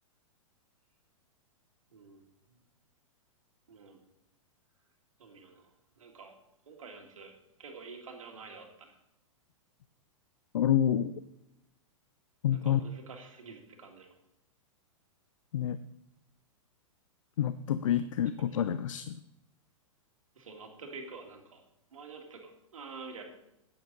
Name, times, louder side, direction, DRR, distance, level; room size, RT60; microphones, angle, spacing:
voice 1, 1.9-2.2 2.5-2.6 3.7-4.0 5.2-5.7 6.0-6.3 6.7-7.3 7.6-8.9 12.5-14.1 18.4-18.5 20.4-21.6 21.9-23.2, right 4 dB, 75° right, 2 dB, 2.2 m, -48 dB
voice 2, 10.5-11.2 12.4-12.8 15.5-15.8 17.4-19.2, left 10 dB, 70° left, 14 dB, 0.5 m, -28 dB
10.0 x 9.2 x 4.0 m, 0.86 s
hypercardioid pair, 110°, 17 cm